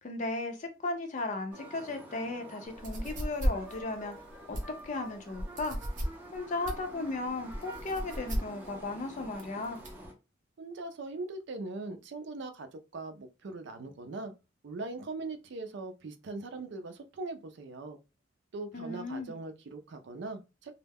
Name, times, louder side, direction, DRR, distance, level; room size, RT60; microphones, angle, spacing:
voice 1, 0.0-4.1 4.5-4.6 4.8-5.8 6.3-9.8 18.7-19.4, left 2 dB, 40° left, 0.5 m, -36 dB
sound 1, 1.5-10.1, right 1 dB, 10° right, 0.6 m, -48 dB
sound 2, 2.7-10.1, equal, 45° right, 0.8 m, -36 dB
voice 2, 10.6-14.3 14.6-18.0 18.5-20.8, right 3 dB, 65° right, 0.4 m, -41 dB
2.2 x 2.1 x 3.4 m
head